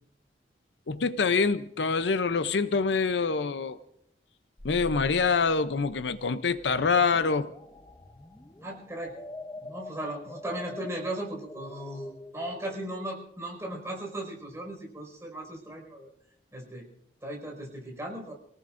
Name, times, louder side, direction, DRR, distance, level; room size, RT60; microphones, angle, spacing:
voice 1, 0.9-3.8 4.6-7.5, left 4 dB, 70° left, 13 dB, 0.6 m, -25 dB
sound 1, 4.6-13.3, left 2 dB, 15° left, 0.7 m, -45 dB
voice 2, 8.6-9.2 9.6-16.1 16.5-16.9 17.2-18.3, right 1 dB, 15° right, -1 dB, 5.3 m, -37 dB
28.5 x 18.5 x 2.6 m, 0.71 s
head